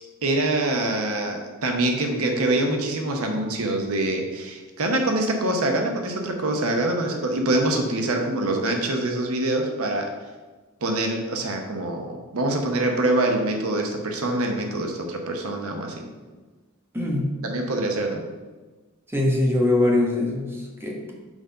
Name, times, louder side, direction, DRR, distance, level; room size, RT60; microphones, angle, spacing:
voice 1, 0.2-10.1 10.8-16.0 17.4-18.2, right 2 dB, 90° right, 3 dB, 0.9 m, -25 dB
voice 2, 16.9-17.3 19.1-21.1, left 2 dB, 10° right, -1 dB, 1.0 m, -23 dB
6.3 x 3.8 x 5.4 m, 1.3 s
head